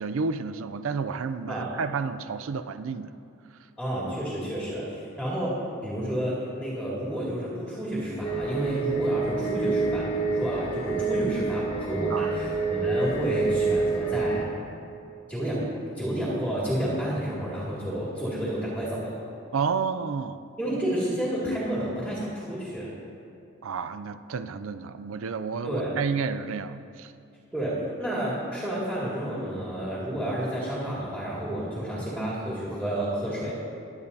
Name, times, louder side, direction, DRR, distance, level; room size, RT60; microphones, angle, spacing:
voice 1, 0.0-3.1 12.1-12.3 19.5-20.4 23.6-27.1, right 5 dB, 70° right, 12 dB, 0.4 m, -30 dB
voice 2, 3.8-5.5 5.8-14.5 15.3-15.6 16.0-19.2 20.6-22.9 25.6-25.9 27.5-33.5, right 1 dB, 5° right, -8 dB, 2.2 m, -30 dB
sound 1, 8.2-14.5, right 4 dB, 25° left, 1.6 m, -27 dB
22.0 x 8.9 x 2.8 m, 2.5 s
head